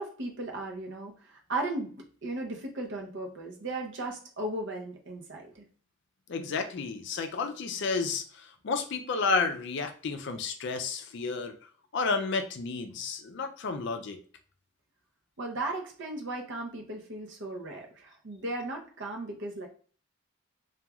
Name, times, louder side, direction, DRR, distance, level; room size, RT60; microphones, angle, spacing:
voice 1, 0.0-5.7 15.4-19.7, right 2 dB, 55° right, 2 dB, 0.6 m, -36 dB
voice 2, 6.3-11.6 11.9-14.2, left 4 dB, 55° left, 6 dB, 0.4 m, -31 dB
2.9 x 2.3 x 2.3 m, 0.43 s
head